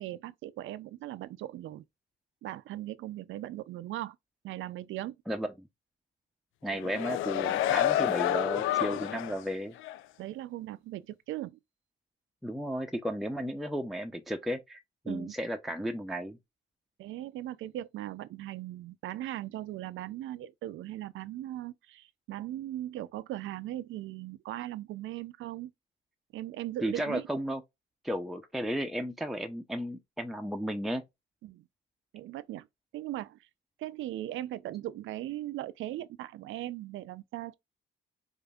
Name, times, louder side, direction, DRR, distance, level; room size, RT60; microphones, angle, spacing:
voice 1, 0.0-1.8 2.4-4.2 4.4-5.1 10.2-11.6 15.1-15.3 17.0-25.7 26.3-27.3 31.4-31.6 32.1-32.7 32.9-33.4 33.8-37.5, right 14 dB, 80° right, 0.5 m, -39 dB
voice 2, 5.3-5.7 6.6-9.8 12.4-14.8 15.0-16.4 26.8-27.6 28.0-31.0, equal, ahead, 0.6 m, -34 dB
sound 1, 6.7-9.4 9.8-10.0, left 12 dB, 80° left, 0.5 m, -29 dB
5.0 x 2.6 x 2.3 m
cardioid pair, 90°, 20 cm